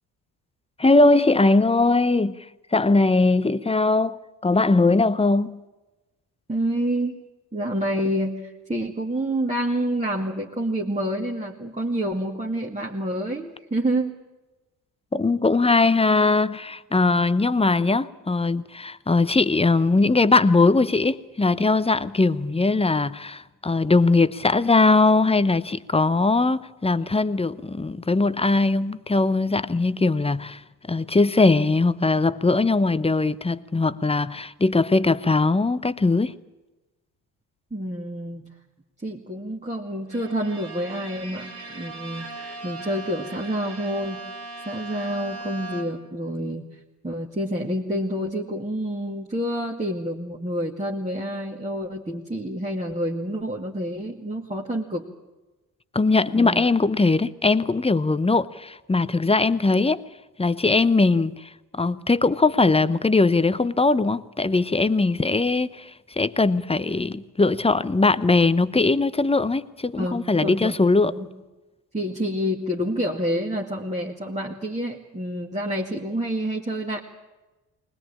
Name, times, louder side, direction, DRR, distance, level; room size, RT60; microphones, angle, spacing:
voice 1, 0.8-2.5 2.7-5.6 15.1-30.6 30.9-36.3 55.9-60.0 60.4-71.1, left 3 dB, 15° left, 0.8 m, -20 dB
voice 2, 6.5-7.2 7.5-14.1 37.7-38.5 39.0-42.3 42.6-44.2 44.7-46.7 47.0-55.1 56.2-56.7 70.0-70.8 71.0-71.3 71.9-77.0, right 1 dB, 15° right, 2.2 m, -28 dB
Bowed string instrument, 40.1-46.2, right 3 dB, 85° right, 3.5 m, -39 dB
20.5 x 20.0 x 8.7 m
hypercardioid pair, 50°, 44 cm